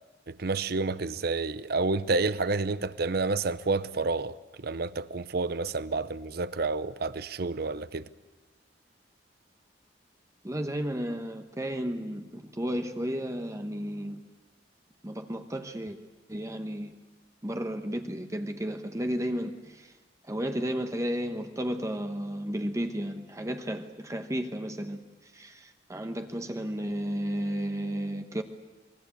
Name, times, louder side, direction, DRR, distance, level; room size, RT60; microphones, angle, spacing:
voice 1, 0.3-4.3 4.6-8.0, right 3 dB, 55° right, 0.7 m, -29 dB
voice 2, 10.4-14.2 15.0-16.0 16.3-16.9 17.4-19.9 20.3-28.4, equal, 15° right, 1.1 m, -33 dB
27.0 x 21.0 x 8.4 m
head